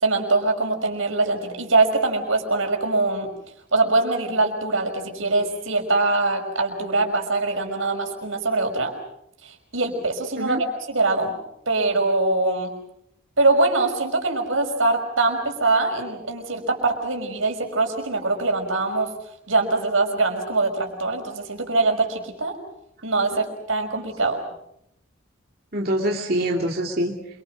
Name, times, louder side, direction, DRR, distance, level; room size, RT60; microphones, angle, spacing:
voice 1, 0.0-3.3 3.7-8.9 9.4-10.6 10.9-11.4 11.7-12.7 13.4-19.1 19.5-22.6 23.0-24.4, right 3 dB, 85° right, 3 dB, 5.6 m, -23 dB
voice 2, 25.7-27.4, right 1 dB, 50° right, -1 dB, 2.8 m, -25 dB
28.0 x 25.0 x 6.3 m, 0.75 s
head